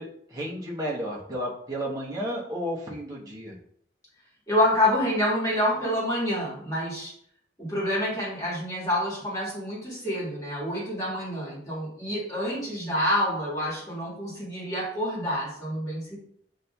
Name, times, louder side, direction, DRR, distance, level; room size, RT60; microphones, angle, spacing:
voice 1, 0.0-3.6, equal, 20° right, -4 dB, 0.8 m, -33 dB
voice 2, 4.5-7.1 7.6-16.2, left 1 dB, 15° left, -7 dB, 1.6 m, -27 dB
7.3 x 2.6 x 2.3 m, 0.66 s
head